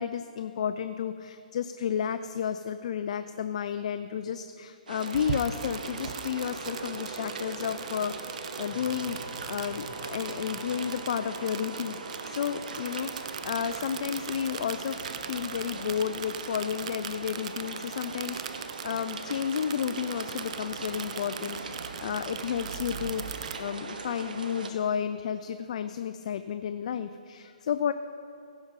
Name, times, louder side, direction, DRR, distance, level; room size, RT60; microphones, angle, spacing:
voice 1, 0.0-12.0 12.3-15.0 15.3-27.9, left 8 dB, 50° left, 10 dB, 0.4 m, -32 dB
sound 1, 4.9-24.7, right 4 dB, 70° right, 1.1 m, -40 dB
sound 2, 5.0-23.5, right 8 dB, 45° right, 0.5 m, -41 dB
sound 3, 5.6-17.0, right 3 dB, 20° right, 1.9 m, -47 dB
15.5 x 5.4 x 5.3 m, 2.7 s
hypercardioid pair, 155°, 5 cm